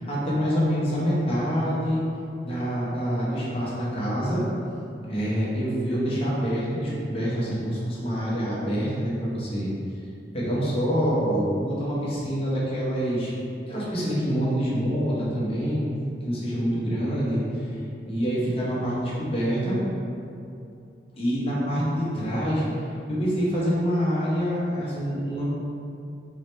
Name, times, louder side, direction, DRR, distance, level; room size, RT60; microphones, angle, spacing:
voice 1, 0.0-2.0 2.4-4.4 5.1-9.7 10.3-13.3 13.7-15.8 16.2-17.8 18.1-19.8 21.2-25.5, equal, 35° left, -7 dB, 1.0 m, -26 dB
4.7 x 3.1 x 3.2 m, 2.6 s
head